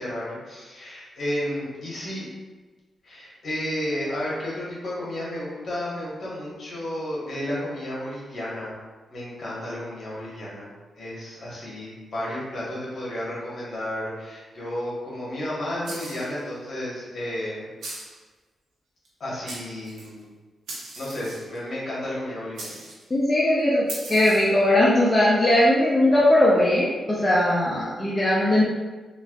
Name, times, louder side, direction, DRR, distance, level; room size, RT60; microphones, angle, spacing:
voice 1, 0.0-2.2 3.0-8.8 9.1-10.7 11.0-17.7 19.2-20.3 21.0-22.7 25.5-25.6, left 1 dB, 60° left, -7 dB, 1.4 m, -32 dB
sound 1, 15.8-16.4 17.8-18.2 19.0-19.1 19.4-20.1 20.7-21.6 22.5-23.0 23.9-24.6, right 2 dB, 80° right, 0.9 m, -38 dB
voice 2, 23.1-28.6, left 1 dB, 30° left, -7 dB, 0.7 m, -19 dB
3.2 x 2.6 x 2.4 m, 1.3 s
supercardioid pair, 50°, 0 cm